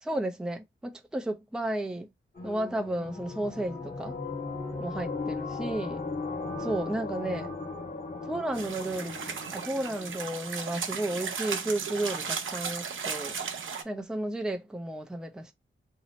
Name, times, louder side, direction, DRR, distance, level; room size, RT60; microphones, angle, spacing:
voice 1, 0.0-2.1 2.4-4.2 4.8-6.0 6.6-7.5 8.2-9.2 9.5-13.4 13.8-15.5, right 1 dB, 5° right, 0.5 m, -33 dB
sound 1, 2.4-10.7, left 3 dB, 45° left, 1.1 m, -37 dB
sound 2, 8.5-13.8, right 6 dB, 80° right, 0.6 m, -35 dB
2.8 x 2.1 x 4.0 m
wide cardioid pair, 120°, 20 cm